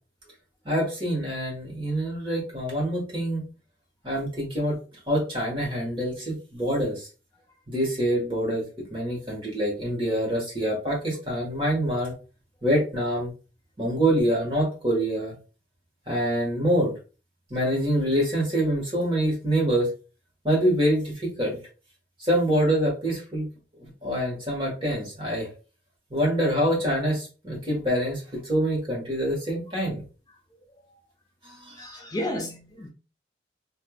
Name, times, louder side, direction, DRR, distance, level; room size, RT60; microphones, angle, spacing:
voice 1, 0.6-3.4 4.0-4.8 5.1-7.1 7.7-12.1 12.6-13.3 13.8-15.3 16.1-17.0 17.5-19.9 20.4-21.6 22.2-23.5 24.0-25.5 26.1-30.0 31.4-31.8, right 1 dB, 30° right, 1.4 m, -25 dB
voice 2, 31.8-32.9, left 1 dB, 20° left, 0.3 m, -32 dB
3.3 x 2.6 x 2.3 m
head